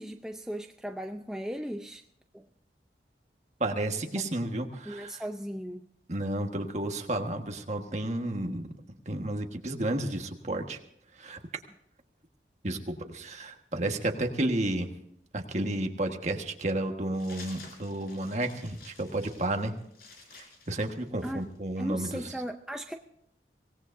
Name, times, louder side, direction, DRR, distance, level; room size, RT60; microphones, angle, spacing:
voice 1, 0.0-2.0 2.3-2.5 4.9-5.9 21.2-21.4 21.8-22.9, equal, 5° right, 4 dB, 0.5 m, -37 dB
voice 2, 3.6-5.2 6.1-8.6 9.0-10.8 11.1-11.4 12.6-14.9 15.3-19.7 20.7-22.3, right 1 dB, 40° right, 4 dB, 1.5 m, -32 dB
sound 1, 17.1-21.6, left 3 dB, 60° left, 4.4 m, -51 dB
24.5 x 17.5 x 2.6 m, 0.72 s
head